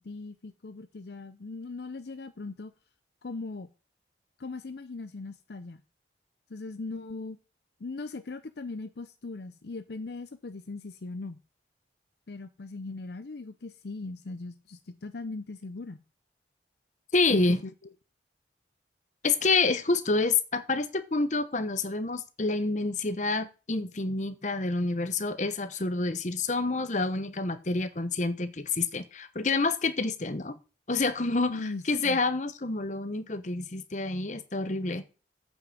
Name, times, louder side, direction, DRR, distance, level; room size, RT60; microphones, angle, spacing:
voice 1, 0.0-2.7 3.2-3.7 4.4-5.8 6.5-7.4 7.8-11.4 12.3-16.0 17.3-17.7 31.5-32.2, left 3 dB, 60° left, 0.6 m, -39 dB
voice 2, 17.1-17.6 19.2-30.6 30.9-31.6 31.9-35.0, left 3 dB, 40° left, 0.9 m, -28 dB
9.0 x 6.0 x 7.5 m
head